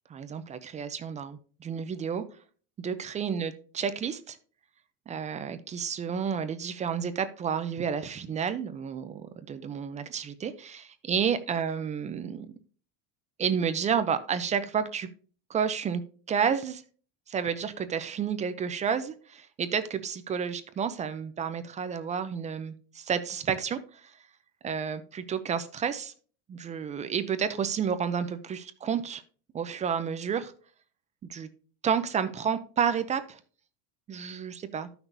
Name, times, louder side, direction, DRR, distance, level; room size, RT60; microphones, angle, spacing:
voice 1, 0.1-2.2 2.8-4.4 5.1-12.5 13.4-15.1 15.5-16.0 16.3-16.8 17.3-24.1 24.6-26.1 26.5-29.2 29.5-30.5 31.3-31.5 31.8-33.4 34.1-34.9, right 7 dB, 20° right, 11 dB, 0.4 m, -30 dB
13.0 x 6.0 x 2.6 m, 0.41 s
cardioid pair, 150°, 36 cm